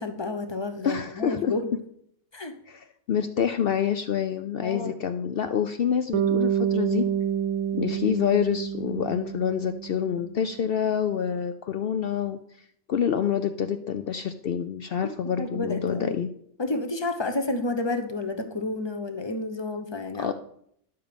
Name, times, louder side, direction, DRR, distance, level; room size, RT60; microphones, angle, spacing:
voice 1, 0.0-1.7 2.3-2.5 4.6-5.0 15.4-16.2 16.6-20.3, left 2 dB, 25° left, 7 dB, 0.6 m, -30 dB
voice 2, 0.8-1.5 2.7-7.1 7.7-12.4 12.9-16.3 20.2-20.3, left 8 dB, 70° left, 9 dB, 0.5 m, -27 dB
Bass guitar, 6.1-10.4, right 9 dB, 75° right, 1.0 m, -28 dB
10.5 x 6.9 x 5.1 m, 0.70 s
omnidirectional pair, 1.5 m